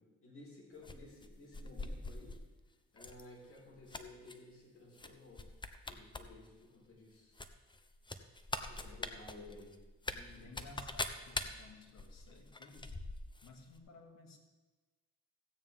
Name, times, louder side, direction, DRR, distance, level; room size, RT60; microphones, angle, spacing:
voice 1, 0.0-2.3 2.9-5.5 5.8-7.4 8.7-9.7 10.1-10.7, left 2 dB, 45° left, -3 dB, 4.1 m, -55 dB
sound 1, 0.8-2.4 3.0-3.2 3.6-4.3 5.0-5.1 5.4-6.2 6.5-6.6 7.4-13.5 13.8-13.9, left 2 dB, 15° left, 0.8 m, -43 dB
voice 2, 8.7-9.3 10.3-13.0 13.4-14.4, left 3 dB, 60° left, 2 dB, 2.1 m, -56 dB
15.5 x 8.9 x 3.6 m, 1.2 s
cardioid pair, 90°, 30 cm